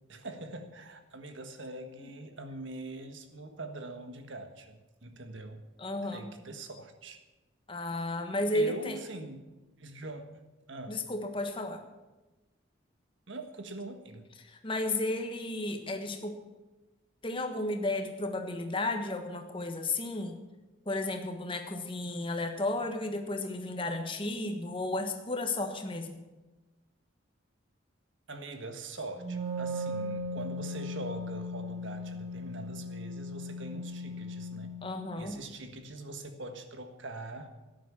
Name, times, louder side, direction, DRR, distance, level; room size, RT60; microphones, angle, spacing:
voice 1, 0.1-5.6 6.1-7.2 8.5-9.4 9.8-10.4 10.7-11.0 13.3-14.2 28.3-34.8 35.2-37.6, right 2 dB, 70° right, 7 dB, 1.5 m, -43 dB
voice 2, 5.8-6.3 7.7-9.0 10.9-11.8 14.4-16.4 17.2-20.4 20.8-26.2 34.8-35.4, left 2 dB, 25° left, 5 dB, 1.4 m, -33 dB
Wind instrument woodwind instrument, 29.2-34.9, left 1 dB, 35° right, 1.3 m, -37 dB
12.5 x 10.5 x 7.3 m, 1.1 s
head